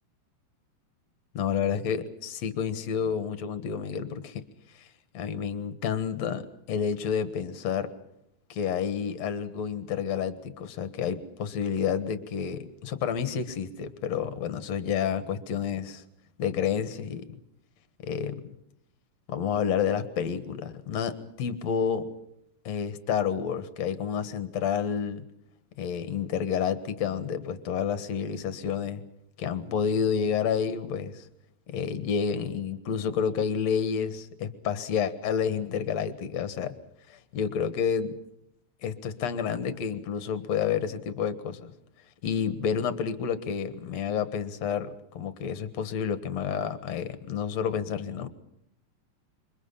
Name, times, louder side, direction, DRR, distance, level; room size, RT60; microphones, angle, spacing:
voice 1, 1.3-4.4 4.8-4.9 5.1-7.9 8.5-16.0 16.4-17.4 18.0-18.5 19.3-22.1 22.6-25.3 25.8-29.0 29.4-31.3 31.7-36.8 37.1-38.2 38.8-41.7 42.2-48.3, left 7 dB, 55° left, 12 dB, 2.1 m, -29 dB
28.5 x 24.0 x 5.7 m, 0.75 s
omnidirectional pair, 4.7 m